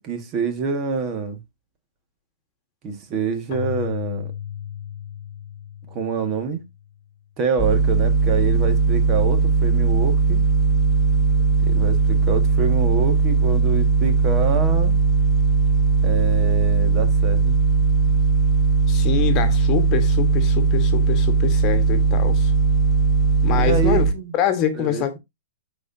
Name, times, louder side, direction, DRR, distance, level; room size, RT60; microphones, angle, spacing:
voice 1, 0.0-1.4 2.8-4.3 5.9-6.6 7.4-10.4 11.6-14.9 16.0-17.6 23.5-24.3 24.7-25.0, right 5 dB, 30° right, 1.7 m, -26 dB
Keyboard (musical), 3.5-7.0, left 10 dB, 50° left, 0.9 m, -34 dB
sound 1, 7.6-24.1, right 4 dB, ahead, 1.0 m, -18 dB
voice 2, 18.9-22.5 23.4-25.2, left 9 dB, 30° left, 1.4 m, -25 dB
13.0 x 4.4 x 2.7 m
hypercardioid pair, 140°, 0 cm